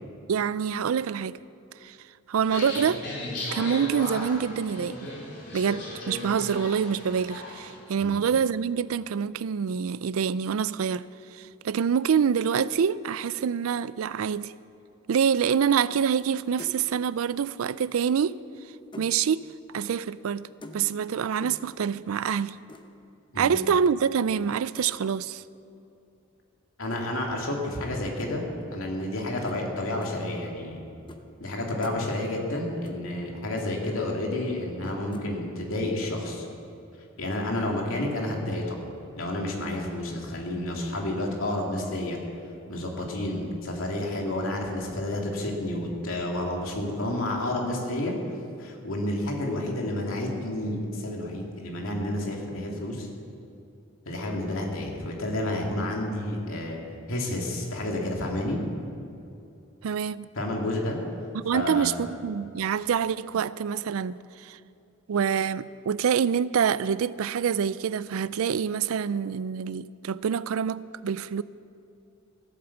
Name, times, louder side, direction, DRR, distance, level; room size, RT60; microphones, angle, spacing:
voice 1, 0.3-1.4 1.8-2.0 2.3-3.0 3.5-5.1 5.5-11.0 11.3-14.5 15.1-18.4 19.0-19.5 19.7-20.5 20.7-22.6 23.4-25.4 59.8-60.3 61.3-64.6 65.1-71.4, right 7 dB, 90° right, 0.4 m, -26 dB
sound 1, 2.4-7.8, left 1 dB, 55° left, 4.1 m, -36 dB
sound 2, 16.1-16.3 16.6-16.9 18.2-19.2 20.6-21.1 21.4-21.7 22.7-22.9 23.4-23.7 24.8-25.1 26.9-27.0 28.2-28.3 29.4-29.6 30.0-30.1 31.1-31.2 31.5-32.0 32.8-33.0 33.2-33.3 33.6-33.7 35.1-35.3, left 1 dB, 25° left, 0.8 m, -45 dB
voice 2, 26.8-28.4 28.7-30.8 31.4-36.4 37.2-38.9 39.2-42.2 42.7-48.1 48.6-53.1 54.1-56.8 57.1-58.6 60.3-61.0 61.5-62.0, left 1 dB, 80° left, 2.5 m, -30 dB
15.0 x 8.7 x 7.2 m
head